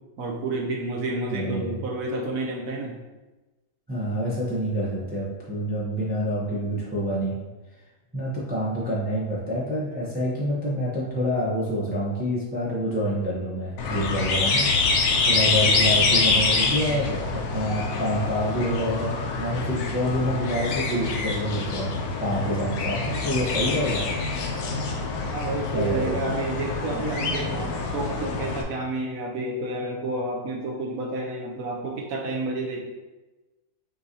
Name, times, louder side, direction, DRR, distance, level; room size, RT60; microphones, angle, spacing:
voice 1, 0.2-3.0 25.3-32.8, right 2 dB, 70° right, 1 dB, 1.0 m, -30 dB
voice 2, 1.2-1.8 3.9-7.4 8.1-24.1 25.7-26.2, equal, 15° right, -7 dB, 0.3 m, -27 dB
sound 1, 13.8-28.6, left 4 dB, 75° left, 1.1 m, -26 dB
6.1 x 2.6 x 2.8 m, 1.1 s
omnidirectional pair, 1.7 m